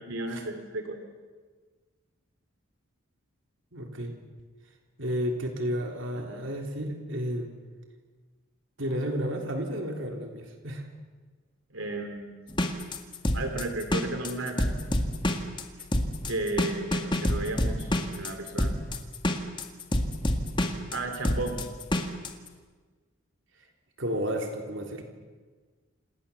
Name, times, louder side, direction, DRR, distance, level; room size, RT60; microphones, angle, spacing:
voice 1, 0.1-1.0 6.2-6.4 11.7-12.4 13.3-14.7 16.3-18.8 20.9-21.6, right 2 dB, 80° right, 5 dB, 3.1 m, -34 dB
voice 2, 3.7-4.1 5.0-7.5 8.8-10.9 24.0-25.0, equal, 65° right, 3 dB, 3.4 m, -32 dB
sound 1, 12.5-22.3, left 1 dB, 25° left, 2.1 m, -27 dB
29.5 x 28.0 x 7.1 m, 1.4 s
head